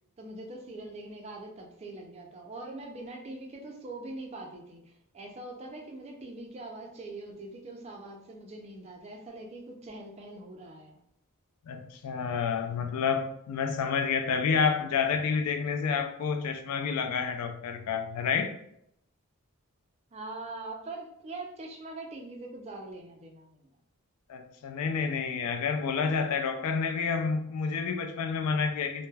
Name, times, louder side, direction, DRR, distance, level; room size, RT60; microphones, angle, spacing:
voice 1, 0.2-11.0 20.1-23.8, right 2 dB, 30° right, 1 dB, 0.4 m, -43 dB
voice 2, 11.6-18.6 24.3-29.1, left 5 dB, 85° left, 6 dB, 0.4 m, -29 dB
2.1 x 2.1 x 3.2 m, 0.75 s
head